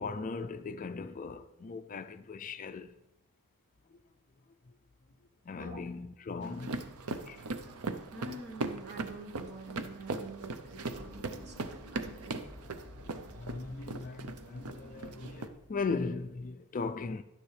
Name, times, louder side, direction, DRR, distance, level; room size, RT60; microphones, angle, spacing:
voice 1, 0.0-3.0 5.4-7.4 12.0-12.2 13.1-17.2, left 4 dB, 35° left, 0.4 m, -38 dB
sound 1, 6.4-15.5, right 3 dB, 80° right, 0.7 m, -40 dB
voice 2, 8.1-12.4, right 2 dB, 50° right, 1.3 m, -46 dB
sound 2, 10.9-16.1, left 1 dB, 20° right, 2.8 m, -52 dB
11.5 x 9.5 x 3.3 m
head